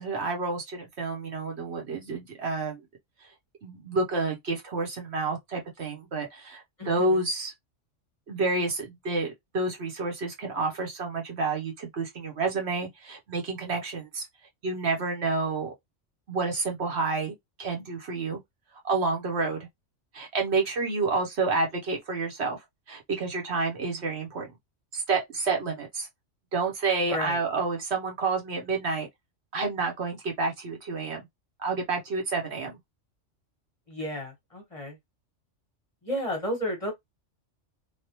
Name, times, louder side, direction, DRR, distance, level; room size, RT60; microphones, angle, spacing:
voice 1, 0.0-2.8 3.6-7.5 8.3-14.3 14.6-15.7 16.3-17.3 17.6-18.4 18.8-19.7 20.1-22.6 22.9-24.5 24.9-26.1 26.5-29.1 29.5-31.3 31.6-32.8, right 3 dB, 60° right, 1.2 m, -29 dB
voice 2, 6.8-7.2 27.1-27.4 33.9-35.0 36.0-36.9, left 1 dB, 30° left, 1.1 m, -32 dB
3.4 x 2.3 x 2.9 m
omnidirectional pair, 1.3 m